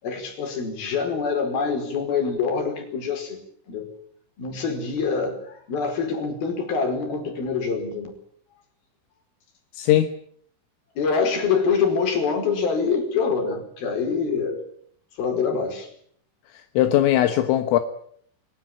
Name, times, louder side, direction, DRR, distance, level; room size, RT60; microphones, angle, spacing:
voice 1, 0.0-3.4 3.7-3.9 4.4-8.1 11.0-14.6 15.2-15.9, left 5 dB, 50° left, 6 dB, 6.3 m, -25 dB
voice 2, 9.7-10.1 16.8-17.8, left 13 dB, 80° left, 8 dB, 3.9 m, -19 dB
23.5 x 20.5 x 8.9 m, 0.63 s
omnidirectional pair, 5.9 m